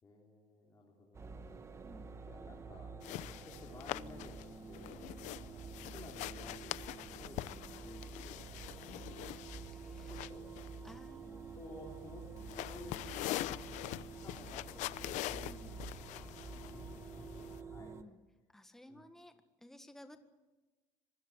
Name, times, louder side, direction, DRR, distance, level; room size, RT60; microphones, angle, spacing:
voice 1, 0.0-1.6 2.3-2.9 3.2-4.4 4.7-4.9 5.2-6.8 7.1-9.6 10.1-10.5 11.3-12.2 12.5-16.1 16.5-18.0 18.9-19.1, left 2 dB, 25° left, -1 dB, 3.7 m, -55 dB
sound 1, 1.1-18.0, right 4 dB, 20° right, 1.3 m, -49 dB
sound 2, 3.0-17.6, left 16 dB, 65° left, 0.8 m, -44 dB
voice 2, 9.8-10.1 10.8-11.6 15.3-15.8 17.8-18.2 18.5-19.3 19.6-20.2, left 1 dB, 5° left, 7 dB, 1.6 m, -55 dB
25.0 x 20.5 x 8.1 m, 1.1 s
cardioid pair, 145°, 13 cm